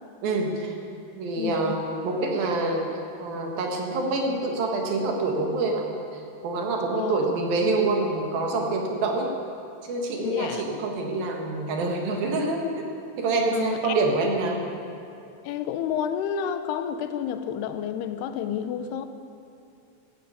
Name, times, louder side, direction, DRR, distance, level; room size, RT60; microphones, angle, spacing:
voice 1, 0.2-0.7 1.1-9.3 9.8-12.8 13.2-14.6, right 3 dB, 70° right, 1 dB, 3.5 m, -26 dB
voice 2, 1.4-1.8 6.9-7.2 10.2-10.6 13.5-14.3 15.4-19.1, left 8 dB, 85° left, 9 dB, 2.9 m, -30 dB
14.5 x 12.0 x 8.4 m, 2.7 s
omnidirectional pair, 4.6 m